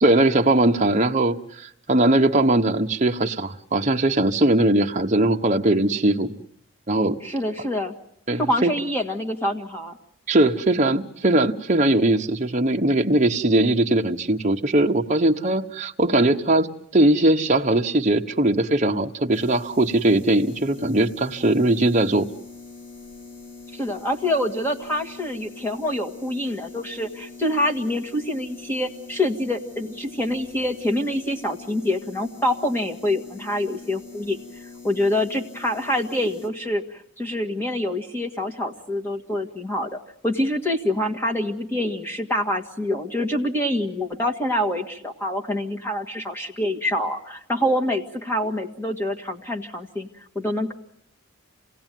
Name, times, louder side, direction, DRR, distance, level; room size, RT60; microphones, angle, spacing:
voice 1, 0.0-6.3 6.9-7.2 8.3-8.7 10.3-16.7 16.9-22.3, right 1 dB, 35° right, 3 dB, 1.2 m, -20 dB
voice 2, 7.2-7.9 8.4-10.0 23.7-50.1 50.4-50.7, left 1 dB, 10° left, 2 dB, 1.9 m, -26 dB
sound 1, 19.3-36.5, left 4 dB, 60° left, 3.5 m, -43 dB
27.5 x 18.5 x 9.3 m, 0.78 s
head